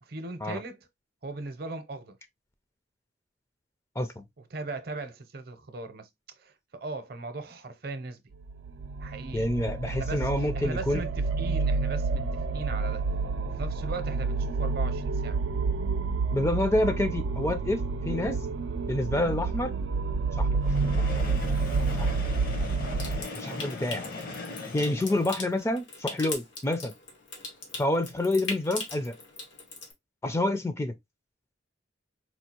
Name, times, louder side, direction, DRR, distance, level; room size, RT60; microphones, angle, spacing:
voice 1, 0.0-0.9 1.2-2.2 4.5-6.1 6.4-8.2 9.0-9.5 9.8-13.0 13.4-15.4 23.4-23.6, right 3 dB, 55° right, 0.7 m, -38 dB
sound 1, 8.4-23.2, right 4 dB, 90° right, 0.4 m, -29 dB
voice 2, 9.3-11.0 16.3-18.4 18.9-19.7 20.4-20.6 22.0-22.1 23.3-24.0 24.7-26.9 27.8-29.1 30.2-30.9, left 1 dB, 15° left, 0.4 m, -28 dB
Train, 20.6-25.6, left 3 dB, 50° left, 0.8 m, -39 dB
Water tap faucet / Sink (filling or washing) / Trickle dribble, 23.0-29.9, left 4 dB, 85° left, 1.2 m, -41 dB
4.4 x 2.4 x 2.8 m
head